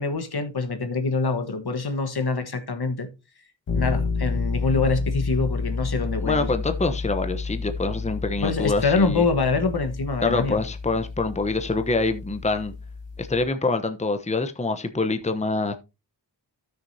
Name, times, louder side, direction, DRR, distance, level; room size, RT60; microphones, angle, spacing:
voice 1, 0.0-3.1 3.7-6.5 8.4-10.6, left 4 dB, 60° left, 1.4 m, -25 dB
sound 1, 3.7-13.5, left 4 dB, 85° left, 1.9 m, -30 dB
voice 2, 6.1-9.2 10.2-12.7 13.2-15.7, left 3 dB, 15° left, 0.9 m, -25 dB
13.5 x 6.5 x 2.8 m
cardioid pair, 45°, 44 cm